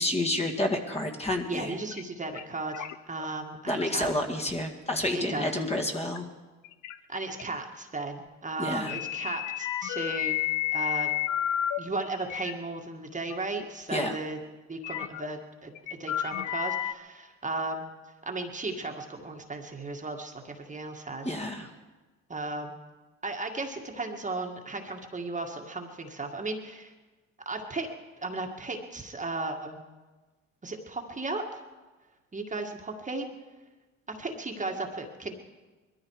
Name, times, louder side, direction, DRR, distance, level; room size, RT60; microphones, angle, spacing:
voice 1, 0.0-1.8 3.7-6.3 8.6-8.9 13.9-14.2 21.2-21.7, left 1 dB, 20° left, 2 dB, 2.1 m, -29 dB
voice 2, 1.5-4.1 5.1-5.5 7.1-10.4 10.7-11.1 11.8-14.4 14.7-17.9 18.3-21.3 22.3-22.7 23.2-26.9 27.5-27.9 28.2-29.8 30.6-31.6 32.3-33.3 34.1-35.3, right 3 dB, 25° right, 3 dB, 1.9 m, -35 dB
sound 1, 1.9-2.0 2.3-2.4 2.7-3.3 3.8-4.0 4.5-4.6 6.1-6.2 6.6-7.0 7.4-7.5 8.9-11.8 12.2-12.5 13.3-13.4 13.6-13.7 14.8-15.3 15.8-16.9, left 12 dB, 65° left, 0.9 m, -31 dB
21.5 x 13.5 x 4.9 m, 1.3 s
supercardioid pair, 75°, 32 cm